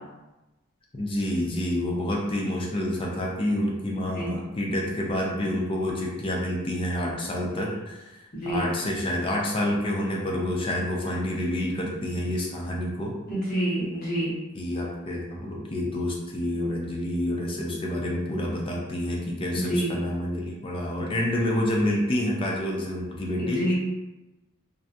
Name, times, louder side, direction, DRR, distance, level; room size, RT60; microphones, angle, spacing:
voice 1, 0.9-8.1 8.4-13.1 14.5-23.7, left 1 dB, 25° left, -2 dB, 0.4 m, -28 dB
voice 2, 8.3-8.6 13.3-14.3 19.5-20.0 23.4-23.7, right 1 dB, 45° left, -8 dB, 1.0 m, -27 dB
2.3 x 2.1 x 2.6 m, 1.0 s
head